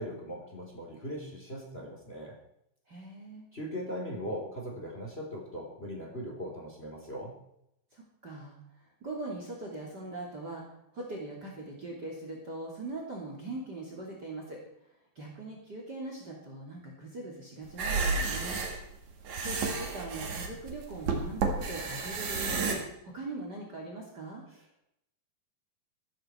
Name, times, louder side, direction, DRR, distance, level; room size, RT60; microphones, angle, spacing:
voice 1, 0.0-2.3 3.5-7.3, equal, 15° left, 0 dB, 3.8 m, -39 dB
voice 2, 2.9-3.4 7.9-8.6 9.0-10.6 10.9-14.6 15.1-18.6 19.4-24.4, right 2 dB, 30° right, -1 dB, 3.3 m, -41 dB
sound 1, 17.7-22.8, right 4 dB, 60° right, 3.5 m, -31 dB
15.5 x 15.0 x 4.6 m, 0.78 s
omnidirectional pair, 4.0 m